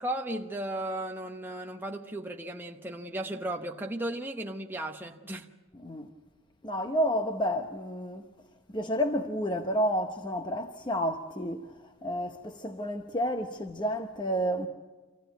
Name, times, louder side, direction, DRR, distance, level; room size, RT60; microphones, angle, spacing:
voice 1, 0.0-5.5, right 1 dB, 10° right, 0.9 m, -35 dB
voice 2, 5.7-6.1 6.6-8.3 8.7-14.7, equal, 20° left, 0.8 m, -30 dB
26.5 x 16.0 x 9.2 m
head